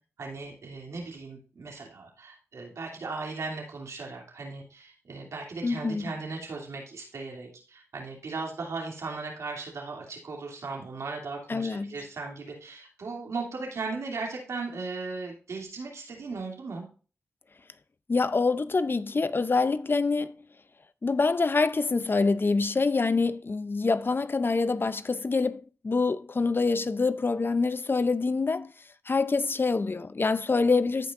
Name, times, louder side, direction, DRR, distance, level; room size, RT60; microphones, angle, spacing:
voice 1, 0.2-16.8, right 3 dB, 80° right, 2.8 m, -37 dB
voice 2, 5.6-6.1 11.5-11.9 18.1-20.3 21.0-28.7 29.1-31.1, left 4 dB, 45° left, 0.6 m, -26 dB
15.0 x 5.2 x 2.6 m
cardioid pair, 45°, 5 cm